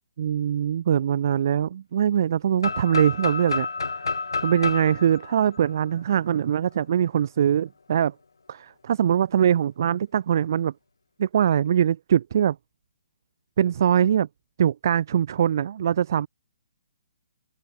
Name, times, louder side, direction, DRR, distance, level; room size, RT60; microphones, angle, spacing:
voice 1, 0.2-3.7 3.9-4.0 4.4-8.1 8.5-10.7 11.2-12.6 13.6-14.3 14.6-16.3, right 9 dB, 55° right, 1.0 m, -22 dB
sound 1, 2.6-6.4, left 4 dB, 80° left, 3.3 m, -30 dB
figure-of-eight pair, 135°, 2 cm